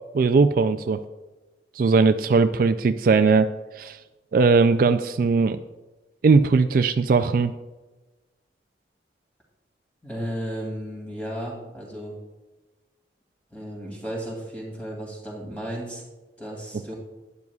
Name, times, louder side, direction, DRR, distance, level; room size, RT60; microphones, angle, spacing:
voice 1, 0.1-1.0 1.8-3.5 3.8-4.0 4.3-5.6 6.2-7.5, right 4 dB, 50° right, 9 dB, 0.3 m, -19 dB
voice 2, 10.0-12.1 13.5-16.0 16.4-16.9, equal, 10° left, -3 dB, 2.5 m, -34 dB
12.0 x 9.6 x 2.3 m, 1.2 s
head